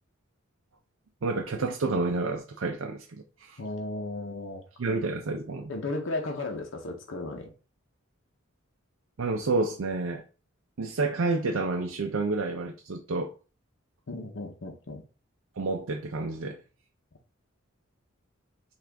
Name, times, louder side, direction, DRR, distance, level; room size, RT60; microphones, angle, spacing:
voice 1, 1.2-3.6 4.8-5.7 9.2-10.2 10.8-13.3 15.6-16.6, right 3 dB, 80° right, 0.5 m, -29 dB
voice 2, 3.6-4.6 5.7-7.5 14.1-15.0, left 2 dB, 65° left, 0.7 m, -35 dB
5.9 x 2.5 x 3.4 m
head